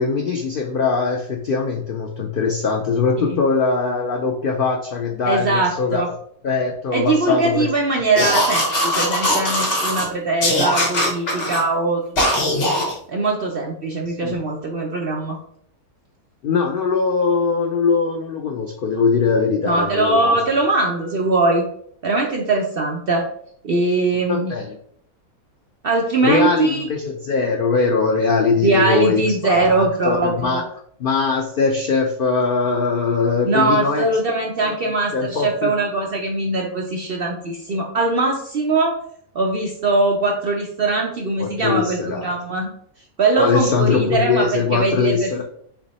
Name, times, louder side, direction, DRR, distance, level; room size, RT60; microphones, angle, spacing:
voice 1, 0.0-6.0 6.4-7.7 14.1-14.4 16.4-20.4 24.3-24.7 26.2-30.6 31.0-34.1 34.6-34.7 35.1-35.7 41.4-42.3 43.4-45.4, left 4 dB, 75° left, 1 dB, 0.5 m, -21 dB
voice 2, 5.2-6.1 6.9-12.0 13.1-15.4 19.6-21.6 22.0-23.3 23.6-24.5 25.8-26.9 28.6-30.6 33.5-39.0 39.3-42.7 43.2-45.4, right 3 dB, 60° right, 0 dB, 0.6 m, -21 dB
sound 1, 8.1-10.1 10.4-11.6 12.2-12.9, left 1 dB, 45° left, 1.3 m, -20 dB
3.4 x 3.0 x 4.0 m, 0.64 s
omnidirectional pair, 1.6 m